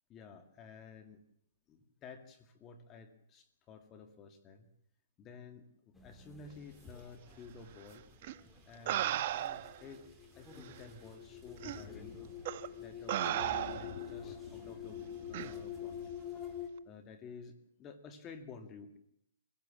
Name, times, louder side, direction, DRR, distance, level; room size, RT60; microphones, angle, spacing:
voice 1, 0.1-1.2 1.7-4.7 5.2-8.0 8.6-10.0 10.4-12.2 12.8-16.0 16.9-19.0, left 5 dB, 25° left, 7 dB, 2.1 m, -52 dB
sound 1, 5.9-16.7, left 9 dB, 5° left, 2.4 m, -47 dB
sound 2, 8.2-8.3 8.9-9.8 10.7-10.8 11.6-11.8 12.4-12.7 13.1-14.0 15.3-15.5, right 12 dB, 45° right, 1.1 m, -35 dB
sound 3, 11.6-12.6 12.9-13.0 13.3-16.7, left 5 dB, 50° left, 3.3 m, -51 dB
25.0 x 16.0 x 7.4 m, 0.75 s
hypercardioid pair, 140°, 0 cm